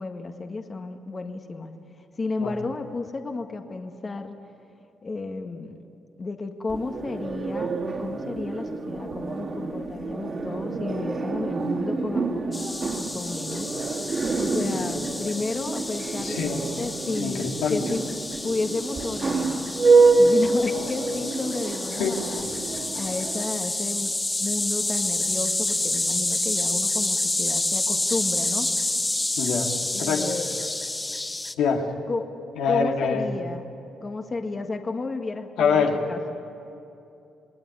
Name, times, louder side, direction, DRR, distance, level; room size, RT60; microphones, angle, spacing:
voice 1, 0.0-1.8 2.2-4.4 5.0-5.8 6.2-14.1 14.4-16.4 16.8-18.0 18.4-28.7 29.9-30.6 32.1-32.3 32.7-33.7 34.0-36.4, left 3 dB, 30° left, 4 dB, 1.8 m, -32 dB
sound 1, 6.7-23.5, right 3 dB, 45° right, 3.2 m, -26 dB
sound 2, 12.5-31.5, left 2 dB, 15° left, 1.0 m, -29 dB
voice 2, 16.2-16.6 17.2-17.8 22.0-22.2 29.4-29.7 30.0-30.2 31.6-31.8 32.6-33.3 35.6-36.0, left 6 dB, 85° left, 1 dB, 2.6 m, -24 dB
28.0 x 19.0 x 9.8 m, 2.8 s
cardioid pair, 90°, 0 cm